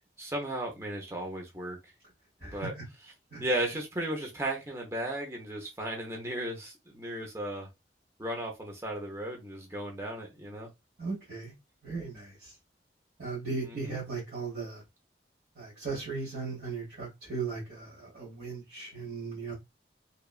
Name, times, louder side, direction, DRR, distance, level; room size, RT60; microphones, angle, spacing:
voice 1, 0.2-1.9 2.4-2.7 3.4-7.7 8.2-10.7 13.6-14.0, right 1 dB, 15° right, 0.6 m, -35 dB
voice 2, 11.0-11.5 11.8-12.5 13.2-14.8 15.5-19.5, right 4 dB, 55° right, 1.3 m, -37 dB
2.9 x 2.3 x 2.3 m
head